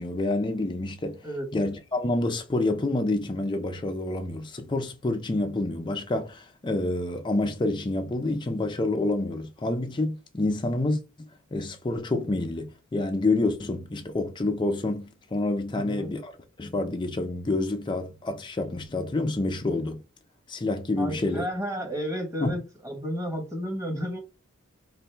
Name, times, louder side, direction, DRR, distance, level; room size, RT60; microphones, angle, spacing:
voice 1, 0.0-1.2 1.5-16.3 16.6-20.0 20.5-21.5 22.4-22.6, left 2 dB, 20° left, 0.5 m, -28 dB
voice 2, 15.7-16.1 21.0-24.2, equal, 15° right, 1.3 m, -32 dB
4.0 x 2.6 x 3.3 m
head